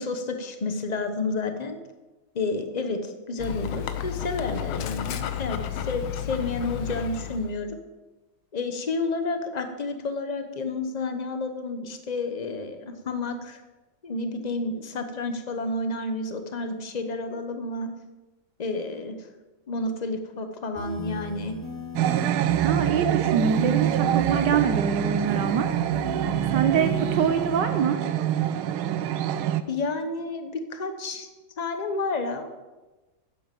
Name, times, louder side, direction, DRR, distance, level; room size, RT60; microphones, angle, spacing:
voice 1, 0.0-1.8 2.3-7.8 8.5-13.6 14.0-17.9 18.6-19.2 19.7-21.6 29.7-31.3 31.6-32.5, left 3 dB, 35° left, 7 dB, 0.6 m, -30 dB
Dog, 3.4-7.6, left 10 dB, 85° left, 1.6 m, -32 dB
sound 1, 20.8-27.6, equal, 10° left, 1.9 m, -36 dB
sound 2, 22.0-29.6, right 11 dB, 90° right, 1.5 m, -25 dB
voice 2, 22.6-25.7 26.5-28.0, right 7 dB, 65° right, 7 dB, 1.3 m, -24 dB
9.8 x 7.7 x 7.6 m, 1.2 s
omnidirectional pair, 2.2 m